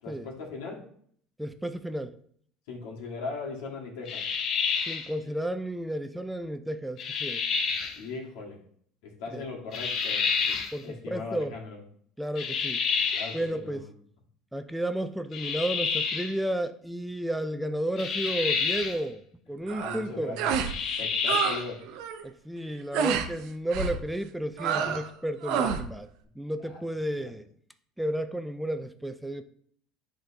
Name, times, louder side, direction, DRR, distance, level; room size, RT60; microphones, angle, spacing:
voice 1, 0.0-0.8 2.7-4.3 7.9-8.6 9.0-11.8 13.1-13.9 19.7-20.6 21.0-21.8 26.7-26.8 27.2-27.3, left 4 dB, 85° left, -1 dB, 1.9 m, -39 dB
voice 2, 1.4-2.1 4.9-7.4 9.3-9.4 10.7-11.6 12.2-12.8 13.3-13.8 14.5-19.2 19.5-20.4 22.2-26.1 26.4-27.5 28.0-29.4, right 1 dB, 5° right, 9 dB, 0.4 m, -32 dB
sound 1, 4.1-5.1 7.0-8.0 9.7-10.8 12.4-13.4 15.3-16.4 18.0-19.0 20.6-21.7, left 5 dB, 50° left, 0.8 m, -29 dB
sound 2, 19.7-20.0 20.4-20.8 21.0-21.6 21.9-22.2 22.9-23.3 23.7-24.0 24.6-25.1 25.4-25.9, right 7 dB, 70° right, 0.7 m, -28 dB
10.0 x 3.8 x 2.8 m, 0.62 s
supercardioid pair, 115°, 0 cm